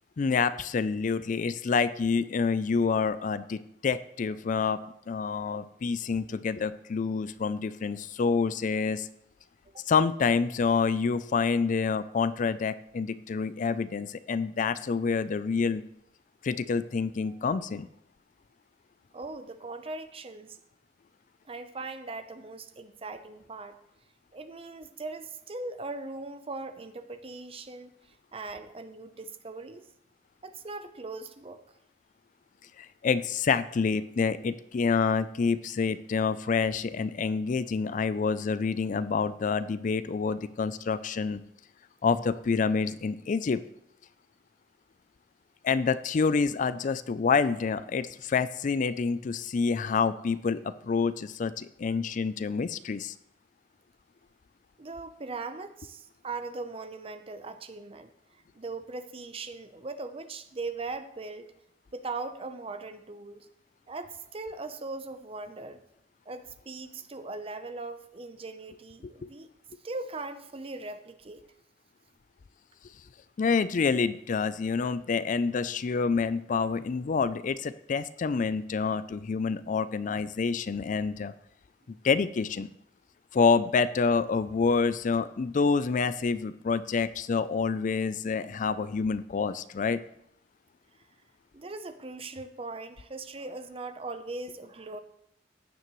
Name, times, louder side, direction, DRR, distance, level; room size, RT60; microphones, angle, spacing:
voice 1, 0.2-4.8 5.1-9.1 9.9-15.8 16.4-17.9 32.8-41.4 42.0-43.6 45.6-53.1 73.4-81.3 82.0-82.7 83.3-90.0, left 5 dB, 45° left, 14 dB, 0.4 m, -27 dB
voice 2, 19.1-20.6 21.5-23.8 24.3-27.9 28.3-29.9 30.4-31.6 54.8-58.1 58.5-61.5 61.9-63.5 63.9-65.8 66.3-69.5 69.8-71.4 91.5-95.0, right 3 dB, 30° right, 10 dB, 0.7 m, -39 dB
15.0 x 9.5 x 3.1 m, 0.76 s
head